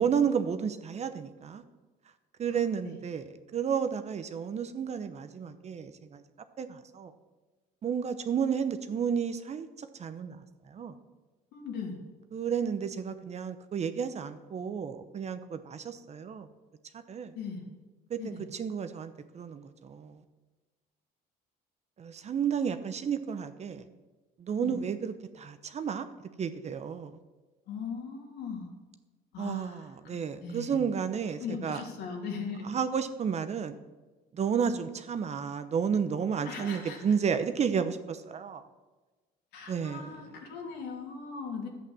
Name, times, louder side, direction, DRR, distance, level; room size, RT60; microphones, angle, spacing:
voice 1, 0.0-1.6 2.4-6.2 6.6-7.1 7.8-11.0 12.3-16.5 16.9-17.3 18.1-20.2 22.0-23.9 24.4-26.1 26.4-27.2 29.4-31.8 32.6-33.8 34.3-38.6 39.7-40.1, right 7 dB, 40° right, 10 dB, 0.9 m, -32 dB
voice 2, 11.5-12.0 17.3-17.6 18.2-18.4 24.6-24.8 27.7-28.7 29.3-30.8 31.4-32.7 34.6-34.7 36.4-37.0 39.5-41.7, left 5 dB, 80° left, 0 dB, 3.0 m, -39 dB
11.0 x 8.3 x 7.3 m, 1.2 s
cardioid pair, 110°, 17 cm